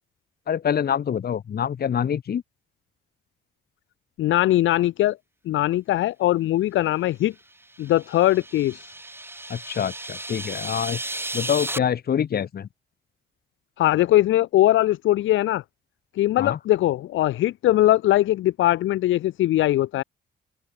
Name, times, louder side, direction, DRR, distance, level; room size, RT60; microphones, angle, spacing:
voice 1, 0.5-2.4 9.5-11.0 11.3-12.7 16.4-16.6, left 8 dB, 50° left, 1.8 m, -25 dB
voice 2, 4.2-5.2 5.4-7.3 7.8-8.9 13.8-15.6 16.1-20.0, left 14 dB, 80° left, 1.0 m, -21 dB
sound 1, 7.6-11.8, right 1 dB, 10° right, 7.9 m, -34 dB
open air
cardioid pair, 90°, 20 cm